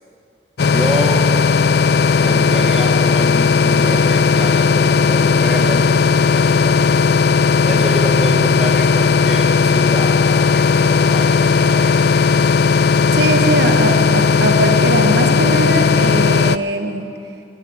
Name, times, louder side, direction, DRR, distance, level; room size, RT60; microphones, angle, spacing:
sound 1, 0.6-16.6, left 5 dB, 60° left, 0.4 m, -15 dB
voice 1, 0.6-1.3 2.2-7.3 7.6-12.5, equal, 5° right, 0 dB, 1.2 m, -27 dB
voice 2, 13.1-17.1, right 1 dB, 65° right, 5 dB, 1.3 m, -20 dB
13.0 x 11.5 x 9.6 m, 2.4 s
head